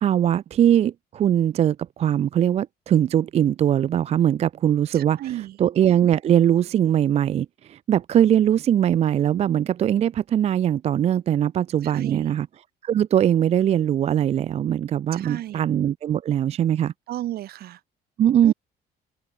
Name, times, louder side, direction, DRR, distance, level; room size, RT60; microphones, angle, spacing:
voice 1, 0.0-5.2 5.6-12.5 12.8-16.9 18.2-18.5, right 10 dB, 40° right, 0.4 m, -21 dB
voice 2, 4.9-5.6 11.8-12.3 15.1-15.6 17.1-17.8 18.4-18.5, right 14 dB, 65° right, 1.4 m, -33 dB
cardioid pair, 110°, 17 cm